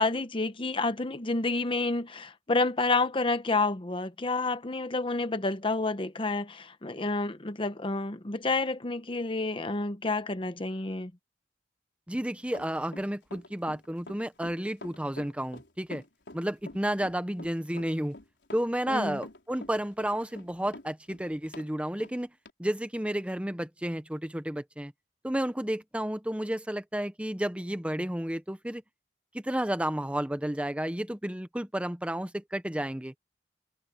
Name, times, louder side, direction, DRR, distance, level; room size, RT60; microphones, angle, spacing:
voice 1, 0.0-11.1 18.9-19.2, left 3 dB, 30° left, 1.0 m, -29 dB
voice 2, 12.1-16.0 16.3-18.1 18.5-22.3 22.6-24.9 25.2-28.8 29.3-33.1, right 1 dB, 5° right, 0.9 m, -31 dB
Run, 12.5-21.7 22.0-22.1 22.5-22.6, left 2 dB, 75° left, 4.9 m, -46 dB
head